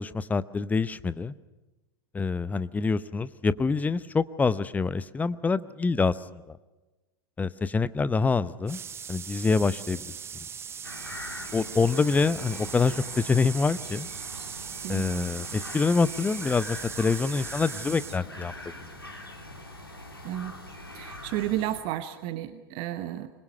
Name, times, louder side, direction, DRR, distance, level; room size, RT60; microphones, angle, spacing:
voice 1, 0.0-1.3 2.1-6.6 7.4-8.8 9.1-10.0 11.5-14.1 14.9-18.5 18.8-18.9, left 4 dB, 15° left, 16 dB, 0.8 m, -26 dB
sound 1, 8.7-18.2, right 7 dB, 20° right, 0.8 m, -39 dB
sound 2, 10.8-21.8, left 1 dB, 85° left, 3.2 m, -42 dB
voice 2, 14.8-15.3 20.2-20.5 20.9-23.3, right 13 dB, 45° right, 12 dB, 1.1 m, -32 dB
25.0 x 22.0 x 6.7 m, 1.1 s
figure-of-eight pair, 85°, 12 cm